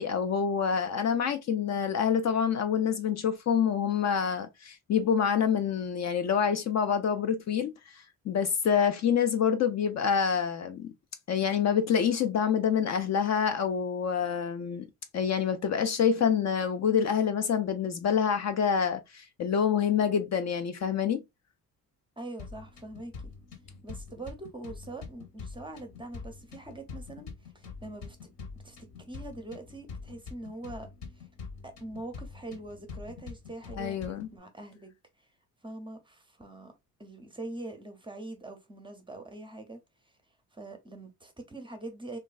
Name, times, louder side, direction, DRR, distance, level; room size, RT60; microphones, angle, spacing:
voice 1, 0.0-10.9 11.3-14.9 15.1-21.2 33.8-34.3, left 7 dB, 45° left, 0.4 m, -27 dB
voice 2, 22.2-23.3 23.8-28.3 28.6-28.8 29.1-30.9 31.1-31.3 31.6-34.9 35.6-36.7 37.0-39.8 40.5-42.2, right 2 dB, 15° right, 0.6 m, -43 dB
sound 1, 22.4-34.4, left 4 dB, 65° left, 1.1 m, -45 dB
3.1 x 2.3 x 2.3 m
cardioid pair, 115°, 38 cm